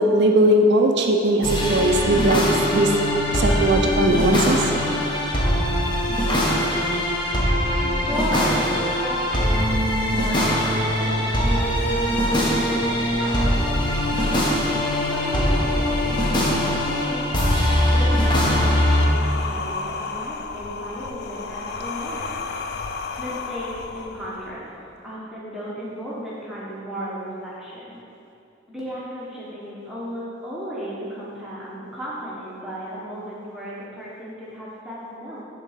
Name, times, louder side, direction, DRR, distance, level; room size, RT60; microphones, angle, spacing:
voice 1, 0.0-2.4 2.7-4.6, right 1 dB, 60° right, 3 dB, 0.5 m, -19 dB
sound 1, 1.4-19.1, equal, 25° left, 1.0 m, -22 dB
voice 2, 7.8-9.9 10.1-14.1 14.8-15.9 16.2-17.3 17.8-22.4 23.2-24.7 25.0-28.0 28.7-35.4, equal, 5° right, -8 dB, 1.1 m, -35 dB
sound 2, 11.6-24.6, left 4 dB, 60° left, 0.4 m, -34 dB
7.2 x 3.7 x 6.4 m, 2.7 s
head